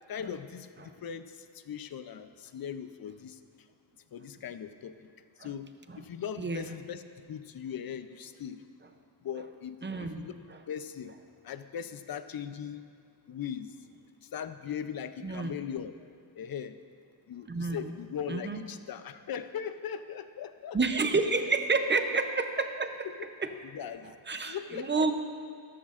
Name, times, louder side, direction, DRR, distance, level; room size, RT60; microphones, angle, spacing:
voice 1, 0.1-3.4 4.1-4.9 5.4-7.0 7.3-8.6 9.2-10.3 10.7-11.1 11.4-12.9 13.3-13.7 14.2-15.9 16.3-16.8 17.3-20.8 21.8-21.9 23.0-23.1 23.7-25.1, left 8 dB, 50° left, 11 dB, 0.5 m, -39 dB
voice 2, 9.8-10.3 15.2-15.6 17.5-17.9 18.3-18.6 20.7-23.5 24.0-25.1, right 4 dB, 25° right, 7 dB, 0.5 m, -30 dB
14.5 x 13.5 x 2.5 m, 2.2 s
wide cardioid pair, 145°, 47 cm